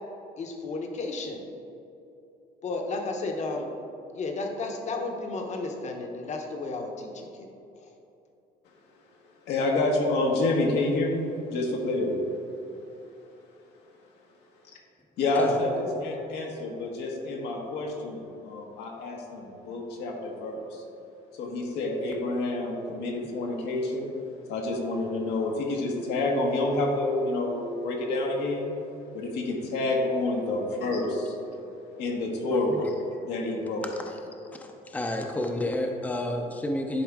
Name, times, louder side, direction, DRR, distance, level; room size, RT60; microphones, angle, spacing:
voice 1, 0.4-1.4 2.6-3.7 4.1-7.5, left 3 dB, 45° left, 2 dB, 1.0 m, -33 dB
voice 2, 9.5-12.2 15.2-20.8 21.4-24.1 24.5-28.7 29.1-31.4 32.0-32.8 33.2-33.9, left 2 dB, 85° left, 0 dB, 1.2 m, -28 dB
voice 3, 32.5-32.8 34.1-34.2 34.6-37.0, left 1 dB, 10° left, 2 dB, 0.6 m, -30 dB
10.5 x 4.3 x 3.6 m, 2.8 s
cardioid pair, 110°, 17 cm